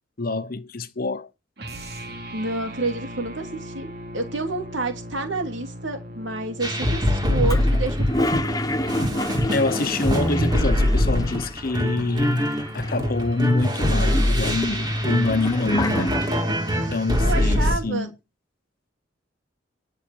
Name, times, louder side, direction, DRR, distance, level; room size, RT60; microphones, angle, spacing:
voice 1, 0.2-1.3 9.5-12.5 12.7-16.1 16.7-18.1, left 2 dB, 50° left, 1.0 m, -25 dB
sound 1, 1.6-8.0, equal, 55° right, 2.8 m, -38 dB
voice 2, 2.3-8.6 17.2-18.1, right 2 dB, 75° right, 3.0 m, -29 dB
sound 2, 6.6-17.8, equal, 20° right, 2.7 m, -23 dB
Toilet flush, 7.4-11.8 12.1-12.2 12.4-13.2 13.7-16.6, left 1 dB, 20° left, 0.9 m, -29 dB
11.0 x 6.8 x 7.1 m
head